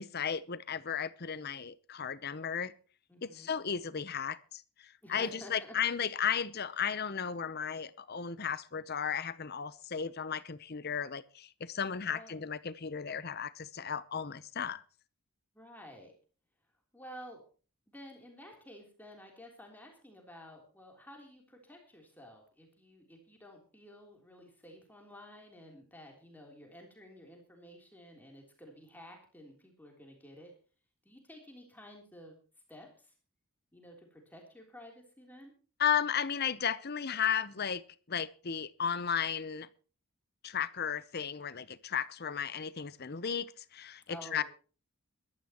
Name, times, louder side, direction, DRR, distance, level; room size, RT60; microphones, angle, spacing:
voice 1, 0.0-2.7 3.2-14.8 35.8-37.8 38.1-39.7 40.4-44.4, left 7 dB, 45° left, 16 dB, 0.8 m, -34 dB
voice 2, 3.1-3.5 5.0-5.8 12.1-12.3 15.5-16.1 16.9-17.4 17.9-30.5 31.0-32.4 32.7-33.1 33.7-35.5 44.1-44.4, equal, 10° left, 1 dB, 3.4 m, -52 dB
21.5 x 13.0 x 3.0 m, 0.37 s
head